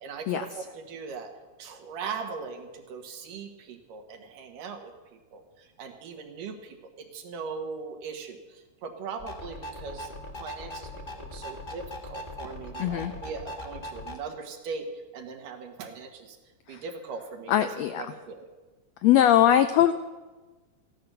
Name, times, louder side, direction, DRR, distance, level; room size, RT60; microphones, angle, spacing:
voice 1, 0.0-1.3 1.6-4.9 5.3-10.1 10.4-10.9 11.1-16.4 16.7-17.7 18.0-18.5, right 5 dB, 85° right, 4 dB, 3.1 m, -39 dB
sound 1, 9.2-14.2, left 1 dB, 30° left, 1.0 m, -40 dB
voice 2, 12.8-13.1 16.7-16.8 17.5-18.0 19.0-19.9, left 11 dB, 85° left, 10 dB, 1.5 m, -21 dB
15.0 x 11.0 x 6.8 m, 1.2 s
omnidirectional pair, 3.7 m